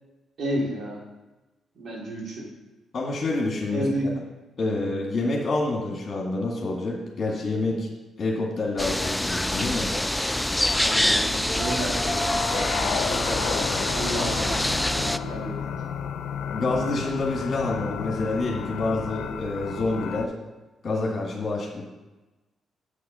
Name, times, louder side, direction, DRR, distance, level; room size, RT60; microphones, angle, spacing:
voice 1, 0.4-1.0 1.7-2.5 3.7-4.2 10.8-15.6, right 1 dB, 65° right, -3 dB, 2.9 m, -32 dB
voice 2, 2.9-3.9 4.6-7.9 8.2-9.9 14.2-14.3 16.5-20.3 20.8-21.8, left 2 dB, 45° left, -2 dB, 1.9 m, -27 dB
sound 1, 8.8-15.2, left 1 dB, 10° left, 0.3 m, -25 dB
sound 2, 11.9-20.3, left 7 dB, 80° left, 0.6 m, -32 dB
7.1 x 6.6 x 5.5 m, 1.1 s
cardioid pair, 90°, 0 cm